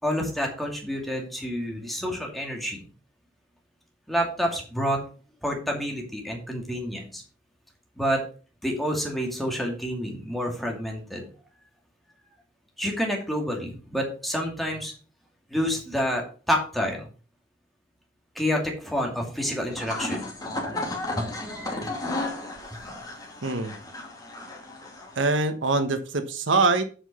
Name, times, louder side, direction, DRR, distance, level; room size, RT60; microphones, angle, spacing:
voice 1, 0.0-2.8 4.1-5.0 5.4-7.2 7.9-8.2 8.6-11.3 12.8-14.9 15.5-17.1 18.3-20.3 21.1-22.9, equal, ahead, 0 dB, 2.5 m, -29 dB
sound 1, 19.6-25.4, left 2 dB, 20° left, 2.4 m, -34 dB
voice 2, 23.4-23.7 25.2-26.8, right 3 dB, 90° right, 9 dB, 1.1 m, -23 dB
8.0 x 6.0 x 5.6 m, 0.37 s
head